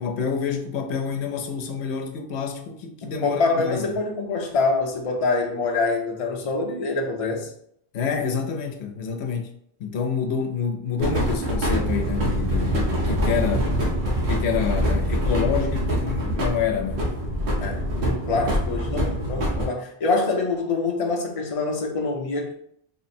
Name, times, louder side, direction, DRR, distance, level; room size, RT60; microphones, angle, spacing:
voice 1, 0.0-3.9 7.9-9.5 9.8-13.7 14.3-17.1, left 6 dB, 90° left, 0.9 m, -27 dB
voice 2, 3.0-7.5 17.6-22.5, left 3 dB, 40° left, 0.6 m, -25 dB
sound 1, 11.0-19.7, equal, 80° right, 1.2 m, -24 dB
3.7 x 2.0 x 4.2 m
omnidirectional pair, 1.1 m